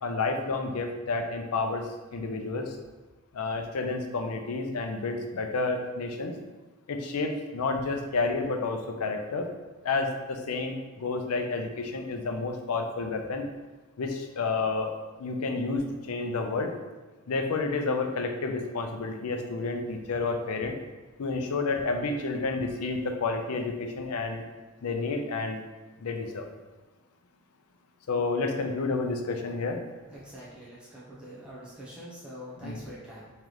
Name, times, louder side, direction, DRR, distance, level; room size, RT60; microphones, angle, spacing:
voice 1, 0.0-2.8 3.3-6.4 6.9-9.5 9.8-13.5 14.0-14.9 15.2-16.7 17.3-20.7 21.2-24.4 24.8-25.6 26.0-26.5 28.1-29.8 32.6-32.8, left 3 dB, 70° left, 4 dB, 0.5 m, -30 dB
voice 2, 30.1-33.3, equal, 5° right, -8 dB, 0.6 m, -44 dB
3.2 x 3.0 x 3.8 m, 1.2 s
head